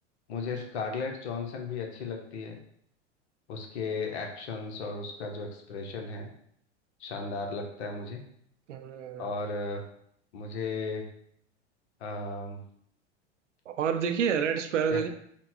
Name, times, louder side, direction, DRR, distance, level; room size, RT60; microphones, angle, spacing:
voice 1, 0.3-2.6 3.5-6.3 7.0-8.2 9.2-9.8 10.3-11.1 12.0-12.6 14.9-15.0, left 4 dB, 65° left, 2 dB, 1.0 m, -35 dB
voice 2, 8.7-9.3 13.7-15.1, right 7 dB, 80° right, 9 dB, 0.5 m, -28 dB
4.2 x 2.3 x 4.3 m, 0.68 s
hypercardioid pair, 95°, 35 cm